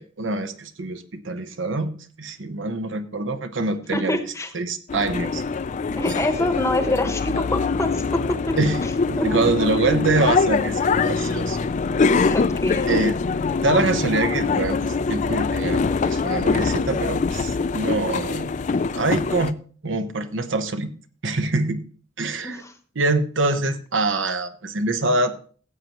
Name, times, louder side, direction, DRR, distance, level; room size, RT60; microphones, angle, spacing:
voice 1, 0.0-4.2 4.5-5.4 8.6-8.8 9.1-11.6 12.9-13.2 13.6-18.5 18.9-19.6 19.8-20.9 21.2-21.8 22.2-22.6 23.0-25.3, right 3 dB, 75° right, 9 dB, 1.0 m, -24 dB
voice 2, 3.9-4.5 6.0-8.6 9.2-9.4 12.2-12.9 22.4-22.7, left 1 dB, 15° left, 8 dB, 1.0 m, -25 dB
sound 1, 4.9-19.5, left 4 dB, 40° left, 0.4 m, -23 dB
15.5 x 7.7 x 3.0 m, 0.42 s
head